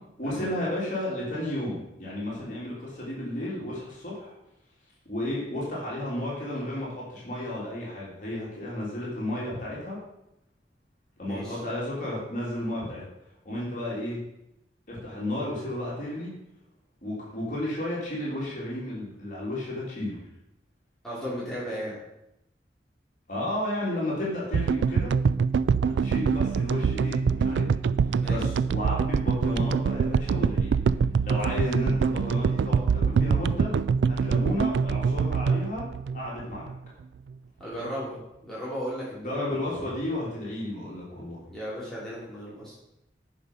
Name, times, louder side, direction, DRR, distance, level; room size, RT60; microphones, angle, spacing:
voice 1, 0.2-4.3 5.1-10.0 11.2-13.0 13.4-14.2 14.9-16.3 17.0-20.2 23.3-25.1 25.8-27.7 28.0-30.8 31.2-33.7 34.0-35.8 36.1-36.7 39.2-41.4, left 1 dB, 45° left, -6 dB, 3.1 m, -32 dB
voice 2, 11.2-11.6 21.0-22.0 28.1-28.5 37.6-39.3 41.5-42.7, equal, 5° left, -9 dB, 3.2 m, -35 dB
sound 1, 24.5-36.9, right 5 dB, 90° right, 0.3 m, -25 dB
10.0 x 5.6 x 5.4 m, 0.86 s
head